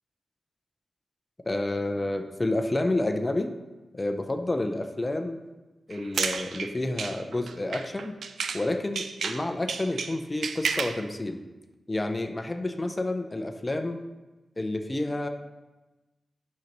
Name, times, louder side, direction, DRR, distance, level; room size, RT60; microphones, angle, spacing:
voice 1, 1.5-3.5 3.9-5.4 5.9-8.2 8.5-11.4 11.9-14.0 14.6-15.3, left 2 dB, 20° left, 6 dB, 0.5 m, -29 dB
sound 1, 5.9-8.7 8.9-11.0, right 5 dB, 90° right, 0.4 m, -32 dB
10.5 x 6.5 x 3.0 m, 1.1 s
wide cardioid pair, 130°, 0 cm